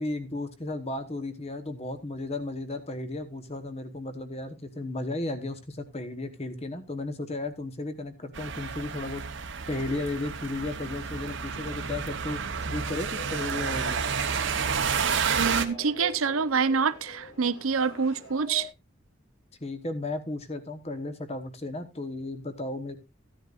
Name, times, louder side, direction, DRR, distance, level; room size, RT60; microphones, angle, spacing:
voice 1, 0.0-9.2 9.7-12.4 12.7-14.0 19.6-23.0, left 2 dB, 30° left, 1.1 m, -34 dB
sound 1, 8.3-15.7, right 6 dB, 65° right, 1.0 m, -30 dB
sound 2, 10.7-18.7, left 1 dB, 90° left, 4.0 m, -46 dB
voice 2, 15.4-18.7, right 5 dB, 85° right, 0.7 m, -26 dB
15.0 x 10.0 x 2.5 m
head